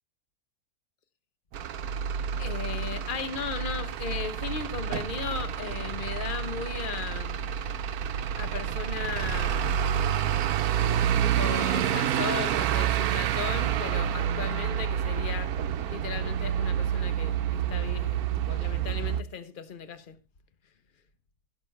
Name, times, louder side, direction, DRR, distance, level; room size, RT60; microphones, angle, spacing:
Truck / Idling, 1.5-19.2, right 9 dB, 80° right, 1.2 m, -28 dB
voice 1, 2.4-7.4 8.4-9.9 11.2-15.6 15.9-18.2 18.5-20.2, left 6 dB, 35° left, 1.1 m, -36 dB
16.0 x 7.1 x 3.3 m
omnidirectional pair, 1.6 m